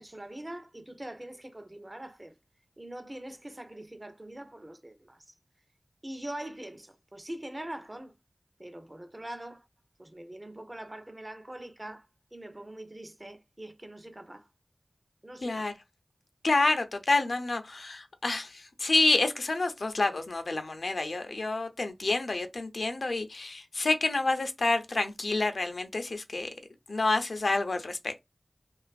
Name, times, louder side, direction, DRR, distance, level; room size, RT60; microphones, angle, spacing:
voice 1, 0.0-2.4 2.8-5.3 6.0-8.1 8.6-9.7 10.0-14.5 15.2-15.8, right 1 dB, 30° right, 0.5 m, -43 dB
voice 2, 15.4-15.7 16.4-26.5 26.9-28.1, left 3 dB, 80° left, 0.4 m, -28 dB
2.5 x 2.3 x 2.3 m
wide cardioid pair, 55°, 0 cm